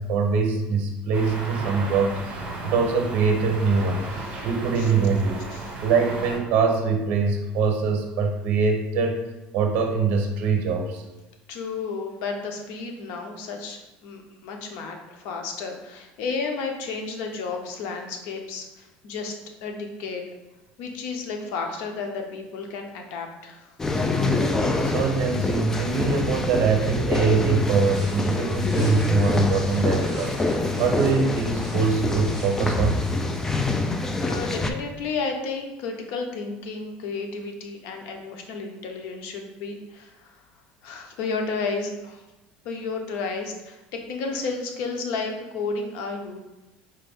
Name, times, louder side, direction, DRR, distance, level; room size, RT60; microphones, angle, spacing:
voice 1, 0.0-4.0 4.4-5.4 5.8-9.2 9.5-11.0 24.8-33.1, right 5 dB, 60° right, 4 dB, 0.7 m, -23 dB
sound 1, 1.1-6.4, right 2 dB, 40° right, 1.4 m, -35 dB
voice 2, 11.5-19.3 19.6-20.2 20.8-23.7 34.2-40.3 40.8-42.2 42.6-43.8 44.1-46.4, left 4 dB, 75° left, 3 dB, 0.7 m, -32 dB
sound 2, 23.8-34.7, left 2 dB, 15° left, 0.3 m, -25 dB
sound 3, 27.5-33.6, right 1 dB, 5° right, 1.3 m, -44 dB
4.5 x 2.5 x 3.6 m, 1.0 s
cardioid pair, 135°, 3 cm